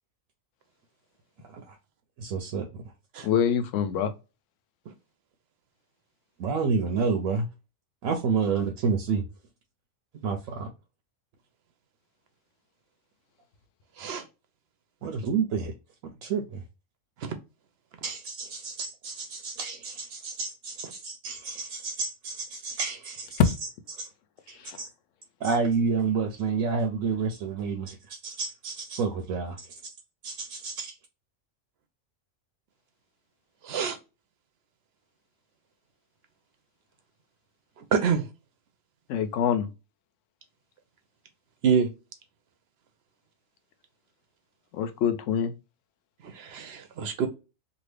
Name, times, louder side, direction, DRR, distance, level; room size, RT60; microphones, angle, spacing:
voice 1, 2.2-2.8 6.4-7.5 8.0-9.2 10.2-10.7 15.0-15.7 16.0-16.6 18.0-23.4 23.9-24.1 24.5-24.9 25.4-29.8 30.2-30.9, right 5 dB, 85° right, 1.0 m, -29 dB
voice 2, 3.2-4.1 24.6-24.8 39.1-39.7 44.7-45.5, left 8 dB, 75° left, 0.9 m, -25 dB
voice 3, 33.6-34.0 37.9-38.2 41.6-41.9 46.3-47.3, right 6 dB, 60° right, 0.7 m, -26 dB
2.7 x 2.5 x 3.2 m
omnidirectional pair, 1.4 m